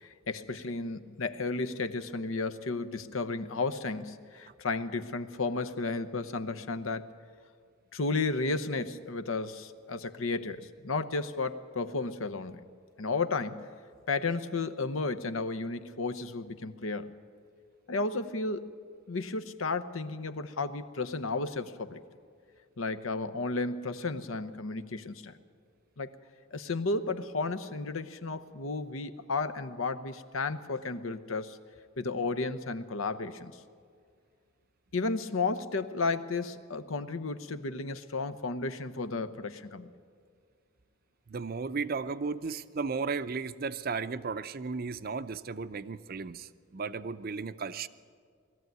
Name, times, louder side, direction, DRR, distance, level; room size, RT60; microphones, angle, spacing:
voice 1, 0.0-7.1 7.9-12.6 13.0-13.7 14.1-17.1 17.9-18.7 19.1-22.0 22.8-25.4 26.0-26.1 26.5-31.6 32.0-33.6 34.9-39.9, left 3 dB, 80° left, 10 dB, 0.9 m, -33 dB
voice 2, 41.3-47.9, right 4 dB, 45° right, 13 dB, 0.5 m, -35 dB
20.0 x 14.0 x 9.3 m, 2.1 s
head